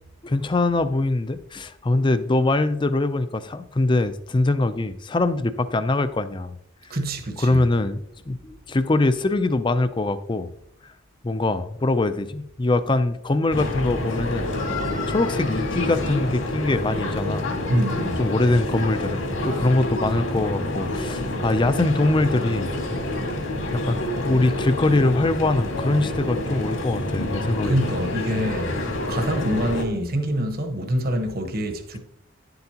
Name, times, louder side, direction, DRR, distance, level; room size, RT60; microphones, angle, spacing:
voice 1, 0.2-6.6 7.4-8.0 8.3-10.5 11.2-14.5 15.1-17.5 18.2-22.7 23.7-27.8, left 2 dB, 25° left, 0.4 m, -23 dB
voice 2, 6.9-7.6 17.7-18.2 27.6-28.8 29.1-32.0, equal, 50° right, 1.2 m, -25 dB
sound 1, 13.5-29.9, left 1 dB, 75° left, 2.0 m, -28 dB
10.5 x 7.8 x 2.9 m
head